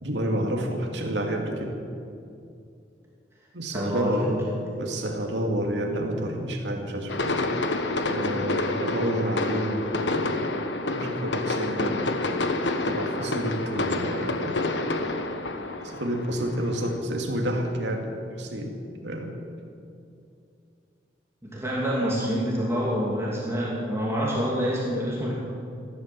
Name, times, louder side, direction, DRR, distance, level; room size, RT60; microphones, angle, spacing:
voice 1, 0.0-1.8 3.5-4.4 4.8-7.3 8.1-10.3 10.9-12.1 12.8-14.7 15.8-18.1 18.4-18.8 19.0-19.4, right 1 dB, 75° right, 2 dB, 2.5 m, -29 dB
voice 2, 3.7-4.4 21.4-25.3, equal, 15° right, -5 dB, 2.6 m, -27 dB
sound 1, 7.1-17.0, left 2 dB, 80° left, 1.2 m, -28 dB
15.0 x 12.0 x 7.7 m, 2.5 s
head